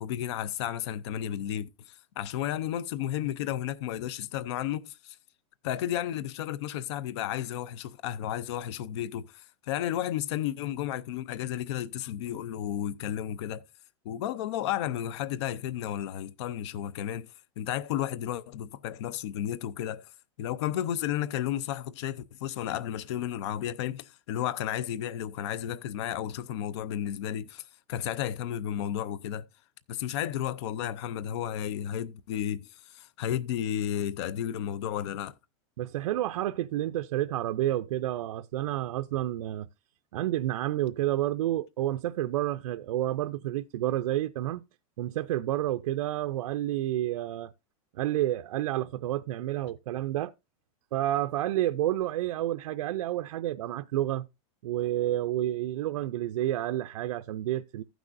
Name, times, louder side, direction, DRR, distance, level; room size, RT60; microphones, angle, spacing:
voice 1, 0.0-5.2 5.6-13.6 14.1-20.1 20.4-29.4 29.9-35.3, left 11 dB, 50° left, 0.5 m, -33 dB
voice 2, 35.8-39.7 40.1-44.6 45.0-47.5 47.9-50.3 50.9-54.3 54.6-57.8, right 14 dB, 85° right, 0.5 m, -30 dB
15.5 x 6.1 x 2.5 m
supercardioid pair, 170°, 18 cm